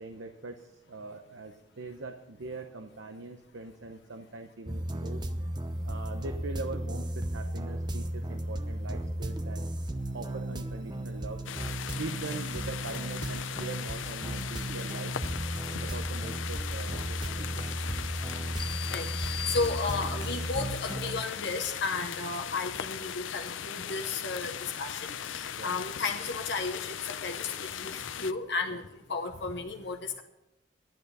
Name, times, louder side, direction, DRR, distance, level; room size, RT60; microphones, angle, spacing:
voice 1, 0.0-5.3 5.8-9.7 10.1-11.4 12.0-15.2 15.8-17.7 25.6-25.7 28.7-28.8, right 3 dB, 80° right, 6 dB, 0.8 m, -42 dB
sound 1, 4.7-21.2, right 1 dB, 25° right, 0.8 m, -35 dB
sound 2, 11.5-28.3, left 9 dB, 85° left, 0.6 m, -38 dB
sound 3, 18.6-20.4, left 8 dB, 30° left, 0.5 m, -41 dB
voice 2, 18.9-30.2, left 4 dB, 65° left, 3 dB, 0.9 m, -34 dB
12.5 x 10.5 x 5.4 m, 0.91 s
head